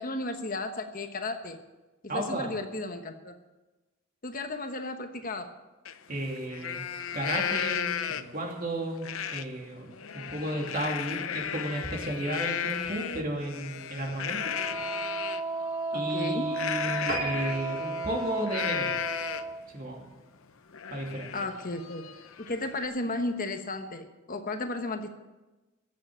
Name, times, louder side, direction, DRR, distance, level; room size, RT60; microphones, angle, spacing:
voice 1, 0.0-1.6 2.1-3.3 4.2-5.5 14.3-14.6 15.9-16.5 21.3-22.0 22.4-25.1, left 2 dB, 40° left, 6 dB, 1.1 m, -34 dB
voice 2, 2.1-2.5 6.1-6.8 7.1-9.9 10.1-14.5 15.9-19.0 19.7-20.0 20.9-21.3, right 1 dB, 40° right, 1 dB, 2.9 m, -33 dB
Livestock farm animals working animals, 5.8-5.9 6.4-8.4 9.0-9.4 9.8-15.4 16.5-19.6 20.0-20.1 20.5-22.8, left 8 dB, 75° left, 0.7 m, -34 dB
Wind instrument woodwind instrument, 14.4-19.6, right 3 dB, 20° right, 1.0 m, -34 dB
sound 1, 17.1-19.8 20.3-20.5 20.9-21.0 21.3-21.4 21.7-21.8, right 3 dB, 60° right, 4.2 m, -38 dB
16.5 x 7.5 x 8.7 m, 1.1 s
head